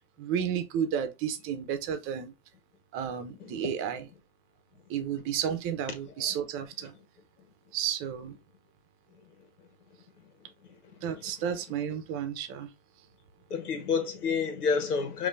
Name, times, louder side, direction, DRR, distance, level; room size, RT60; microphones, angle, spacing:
voice 1, 0.2-2.3 2.9-4.1 4.9-6.9 7.7-8.3 11.0-12.7, right 8 dB, 30° right, 0.9 m, -32 dB
voice 2, 3.4-3.7 6.2-6.3 11.1-11.2 13.5-15.3, left 5 dB, 80° left, 1.7 m, -29 dB
5.4 x 2.9 x 2.6 m
hypercardioid pair, 135°, 45 cm